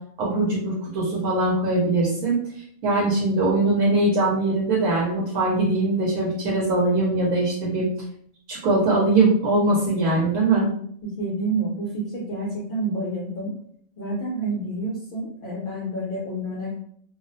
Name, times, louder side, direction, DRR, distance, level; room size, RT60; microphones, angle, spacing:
voice 1, 0.2-7.9 8.5-10.7, right 2 dB, 85° right, -4 dB, 1.1 m, -21 dB
voice 2, 11.0-13.5 14.0-16.7, right 2 dB, 55° left, -5 dB, 0.6 m, -29 dB
2.5 x 2.0 x 2.6 m, 0.66 s
omnidirectional pair, 1.4 m